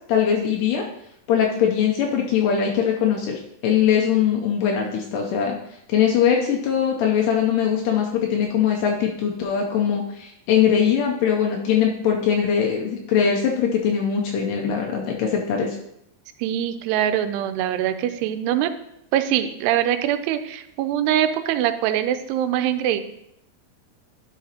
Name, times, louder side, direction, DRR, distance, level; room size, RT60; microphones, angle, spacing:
voice 1, 0.1-0.8 1.3-5.6 5.9-15.8, left 8 dB, 90° left, 0 dB, 1.8 m, -21 dB
voice 2, 16.4-18.7 19.1-23.0, right 11 dB, 90° right, 10 dB, 2.6 m, -23 dB
11.0 x 4.9 x 2.8 m, 0.78 s
omnidirectional pair, 4.6 m